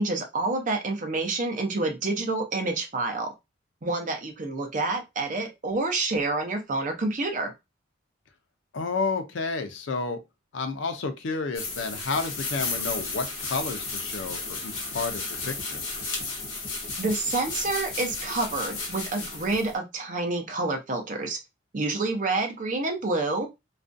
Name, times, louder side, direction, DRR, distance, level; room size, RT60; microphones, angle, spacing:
voice 1, 0.0-3.3 3.8-7.5 17.0-21.4 21.7-23.5, right 3 dB, 40° right, 0.6 m, -28 dB
voice 2, 8.7-10.2 10.5-15.8, left 4 dB, 70° left, 0.5 m, -31 dB
sound 1, 11.5-19.7, left 3 dB, 85° left, 1.0 m, -33 dB
2.4 x 2.2 x 2.5 m
head